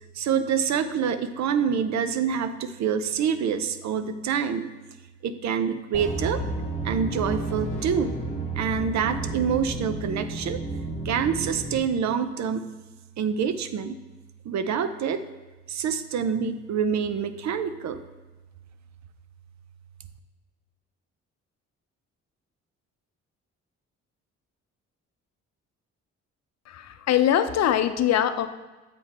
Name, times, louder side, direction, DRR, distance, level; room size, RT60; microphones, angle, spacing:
voice 1, 0.2-4.7 5.2-6.4 6.8-8.1 8.6-10.6 11.0-12.6 13.2-14.0 14.4-15.2 15.7-18.0, right 7 dB, 65° right, 11 dB, 0.6 m, -26 dB
sound 1, 5.9-11.8, right 2 dB, 25° left, 1.4 m, -31 dB
voice 2, 26.7-28.5, left 10 dB, 60° left, 10 dB, 0.6 m, -22 dB
7.6 x 5.1 x 4.2 m, 1.2 s
cardioid pair, 90°, 30 cm